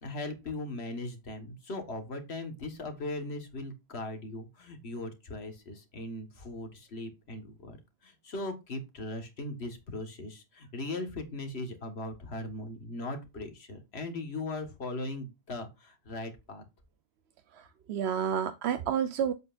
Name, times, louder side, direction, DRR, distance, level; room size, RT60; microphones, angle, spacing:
voice 1, 0.0-7.8 8.0-16.6, left 2 dB, 85° left, 1.9 m, -39 dB
voice 2, 17.5-19.3, right 8 dB, 85° right, 0.9 m, -30 dB
7.9 x 7.7 x 2.5 m
omnidirectional pair, 1.0 m